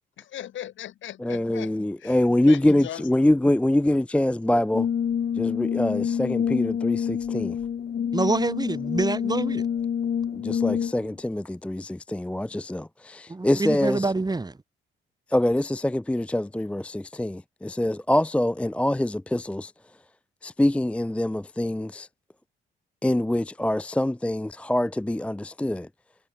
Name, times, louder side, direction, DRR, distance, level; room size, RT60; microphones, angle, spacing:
voice 1, 0.2-2.2 2.5-3.3, left 11 dB, 75° left, 8.0 m, -39 dB
voice 2, 1.2-4.8 5.4-7.6 10.3-14.1 15.3-19.7 20.4-22.1 23.0-25.9, left 1 dB, 5° left, 0.5 m, -24 dB
Brass instrument, 4.7-11.1, left 8 dB, 50° left, 2.2 m, -27 dB
voice 3, 8.1-9.7 13.3-14.6, right 3 dB, 20° right, 4.3 m, -26 dB
cardioid pair, 90°, 20 cm